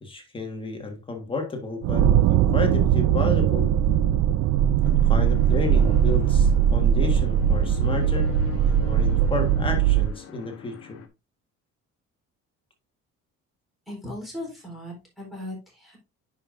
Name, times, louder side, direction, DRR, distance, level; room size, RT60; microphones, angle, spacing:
voice 1, 0.0-3.7 4.8-8.3 8.7-11.0, left 3 dB, 15° left, 1.6 m, -32 dB
sound 1, 1.8-10.1, right 9 dB, 70° right, 0.6 m, -20 dB
sound 2, 4.8-11.1, left 6 dB, 50° left, 1.0 m, -42 dB
voice 2, 13.9-16.0, left 1 dB, ahead, 3.9 m, -37 dB
10.0 x 5.3 x 2.6 m
cardioid pair, 170°, 29 cm